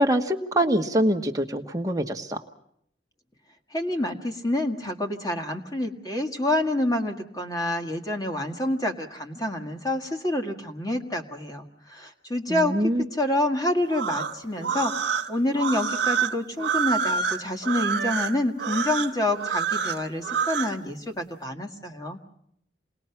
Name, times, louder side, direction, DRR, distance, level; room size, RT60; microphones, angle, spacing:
voice 1, 0.0-2.4 12.5-13.0, equal, 20° right, 3 dB, 1.3 m, -24 dB
voice 2, 3.7-22.2, left 1 dB, 20° left, 3 dB, 1.8 m, -28 dB
sound 1, 13.8-20.8, right 6 dB, 60° right, 1.6 m, -27 dB
28.0 x 20.0 x 5.9 m, 0.70 s
head